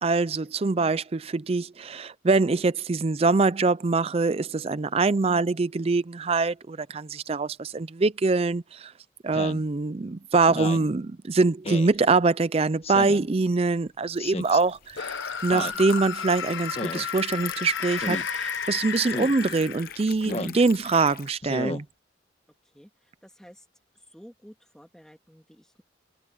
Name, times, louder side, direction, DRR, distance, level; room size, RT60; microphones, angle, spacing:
voice 1, 0.0-8.9 9.2-15.2 15.4-21.8, right 3 dB, 30° right, 0.4 m, -24 dB
Speech synthesizer, 9.3-9.6 10.5-10.9 11.6-11.9 12.8-13.3 14.2-14.6 15.5-15.8 16.7-17.1 18.0-18.3 19.1-19.4 20.3-20.6 21.4-21.8, left 2 dB, 30° left, 1.4 m, -33 dB
Liquid, 13.1-21.3, left 8 dB, 50° left, 0.9 m, -42 dB
sound 1, 14.9-20.1, left 6 dB, 75° left, 1.0 m, -33 dB
voice 2, 23.2-23.6 24.1-25.8, equal, 5° left, 3.1 m, -51 dB
head